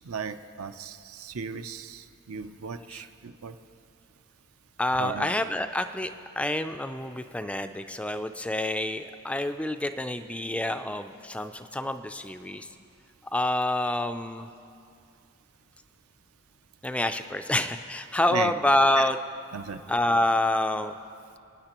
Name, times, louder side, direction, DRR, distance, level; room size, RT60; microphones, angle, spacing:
voice 1, 0.0-3.6 5.0-5.3 18.3-18.5 19.0-19.1 19.5-19.8, right 6 dB, 70° right, 10 dB, 0.6 m, -36 dB
voice 2, 4.8-12.7 13.3-14.5 16.8-19.2 19.9-21.0, left 1 dB, 5° left, 9 dB, 0.3 m, -27 dB
28.5 x 9.6 x 3.0 m, 2.4 s
head